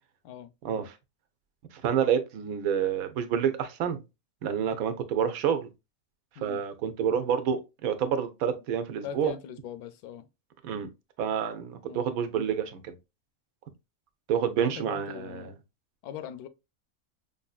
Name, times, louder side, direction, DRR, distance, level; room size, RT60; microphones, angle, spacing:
voice 1, 0.6-0.9 1.8-4.0 4.4-5.7 6.4-9.3 10.6-10.9 11.2-13.0 14.3-15.5, right 8 dB, 75° right, 1.1 m, -28 dB
voice 2, 9.0-10.3 11.8-12.0 14.6-15.5 16.0-16.5, left 9 dB, 90° left, 1.1 m, -41 dB
5.2 x 2.6 x 2.3 m
omnidirectional pair, 1.5 m